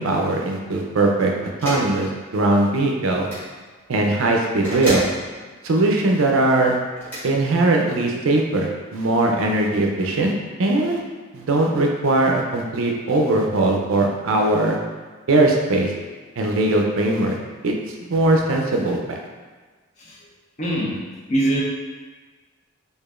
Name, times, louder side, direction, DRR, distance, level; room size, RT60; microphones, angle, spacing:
voice 1, 0.0-1.3 1.6-3.3 3.9-5.1 5.6-6.8 7.2-10.3 10.6-11.0 11.3-14.8 15.3-15.9 16.4-17.4 17.6-17.7 18.1-19.2, right 2 dB, 70° right, 1 dB, 0.5 m, -20 dB
sound 1, 1.6-1.9 3.2-3.5 4.6-5.1 7.0-7.2, equal, 10° left, 1.5 m, -28 dB
voice 2, 20.6-21.0 21.3-21.6, right 1 dB, 30° left, -3 dB, 0.6 m, -22 dB
4.8 x 2.5 x 2.4 m, 1.4 s
head